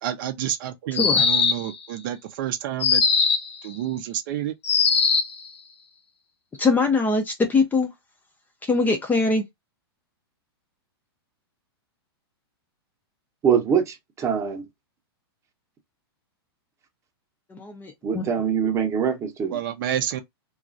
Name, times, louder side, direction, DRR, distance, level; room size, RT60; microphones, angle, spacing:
voice 1, 0.0-3.0 3.6-4.5 19.5-20.2, right 11 dB, 55° right, 0.5 m, -29 dB
sound 1, 0.9-1.8 2.8-3.6 4.6-5.4, left 5 dB, 90° left, 0.7 m, -20 dB
voice 2, 0.9-1.2 6.6-7.9 8.6-9.4 17.5-18.2, left 3 dB, 15° left, 0.5 m, -22 dB
voice 3, 13.4-14.7 18.0-19.6, right 7 dB, 20° right, 0.8 m, -23 dB
3.0 x 2.4 x 2.5 m
hypercardioid pair, 130°, 13 cm